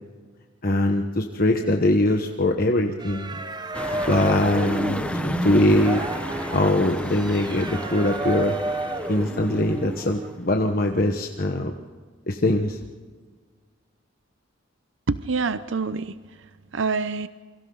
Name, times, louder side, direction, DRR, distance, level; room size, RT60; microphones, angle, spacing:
voice 1, 0.6-3.3 4.1-6.0 6.5-8.6 9.1-11.7 12.3-12.8, left 1 dB, 45° left, 3 dB, 1.2 m, -22 dB
sound 1, 3.0-10.4, right 2 dB, 20° right, 0.8 m, -30 dB
sound 2, 3.7-10.3, left 1 dB, 5° left, 1.3 m, -34 dB
voice 2, 15.1-16.5 16.7-17.3, right 4 dB, 70° right, 13 dB, 0.7 m, -26 dB
28.0 x 24.0 x 3.9 m, 1.5 s
head